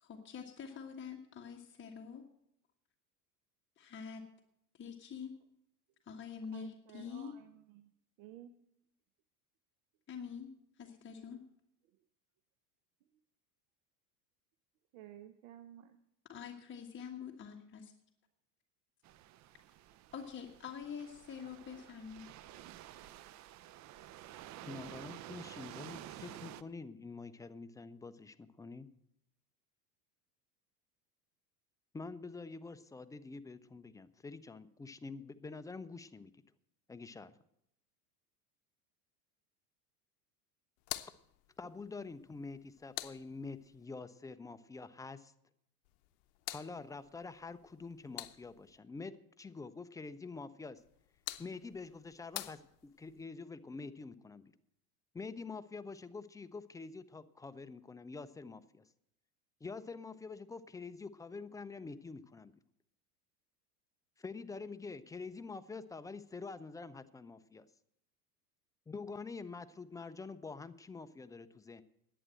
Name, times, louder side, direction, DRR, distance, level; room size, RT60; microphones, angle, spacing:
voice 1, 0.0-2.2 3.8-4.2 4.7-5.3 6.1-7.3 10.1-10.5 10.8-11.4 16.3-17.9 20.1-22.3, left 7 dB, 25° left, 1 dB, 1.5 m, -46 dB
voice 2, 6.5-7.9 8.2-8.5 14.9-16.0, right 12 dB, 60° right, 9 dB, 1.0 m, -53 dB
sound 1, 19.0-26.6, right 13 dB, 35° right, 0.6 m, -51 dB
voice 3, 24.6-28.9 31.9-36.3 36.9-37.3 41.6-45.3 46.5-50.8 51.4-52.6 53.0-54.5 55.1-58.8 59.6-62.5 64.2-67.7 68.9-71.8, left 4 dB, 10° left, 12 dB, 0.4 m, -46 dB
sound 2, 40.8-43.9 45.8-48.8 50.8-53.2, left 17 dB, 65° left, 0.8 m, -48 dB
11.0 x 8.9 x 7.6 m, 0.77 s
hypercardioid pair, 90°, 47 cm